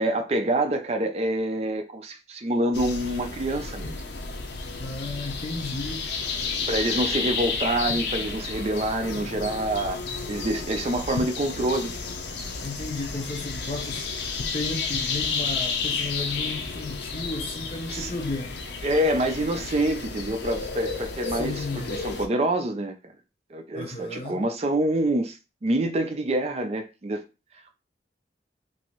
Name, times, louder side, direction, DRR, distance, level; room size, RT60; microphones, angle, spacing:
voice 1, 0.0-3.9 6.7-11.9 17.9-18.1 18.8-22.9 23.5-27.2, right 1 dB, 35° right, 0.4 m, -26 dB
sound 1, 2.7-22.3, left 4 dB, 75° left, 0.5 m, -32 dB
voice 2, 4.8-6.1 12.6-14.2 14.5-18.6 21.3-21.9 23.7-24.4, left 3 dB, 30° left, 0.7 m, -33 dB
2.9 x 2.6 x 2.9 m
head